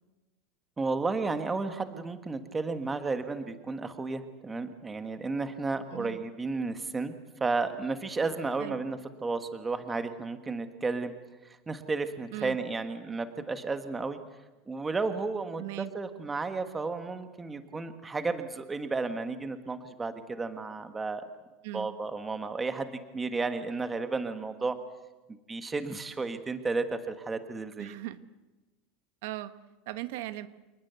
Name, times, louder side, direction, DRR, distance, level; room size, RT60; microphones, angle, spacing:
voice 1, 0.8-7.1 7.4-11.1 11.4-14.2 14.7-21.2 21.7-24.8 25.5-27.9, right 3 dB, 10° right, 9 dB, 1.4 m, -33 dB
voice 2, 5.9-6.2 8.6-8.8 12.3-12.6 15.6-15.9 21.6-21.9 27.8-28.2 29.2-29.5 29.9-30.5, right 16 dB, 65° right, 12 dB, 1.3 m, -38 dB
27.5 x 20.0 x 8.1 m, 1.1 s
supercardioid pair, 175°, 0 cm